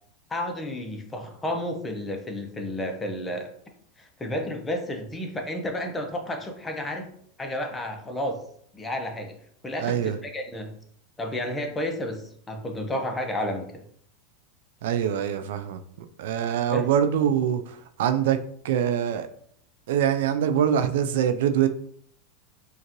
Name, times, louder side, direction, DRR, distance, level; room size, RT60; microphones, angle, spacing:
voice 1, 0.3-3.5 4.0-7.1 7.4-8.4 8.7-9.3 9.6-10.7 11.2-13.8 16.7-16.9, left 1 dB, 15° left, 0.8 m, -31 dB
voice 2, 9.8-10.2 14.8-15.8 16.2-18.4 18.6-19.3 19.9-21.7, right 9 dB, 75° right, 0.4 m, -24 dB
5.2 x 2.5 x 3.0 m
hypercardioid pair, 110°, 0 cm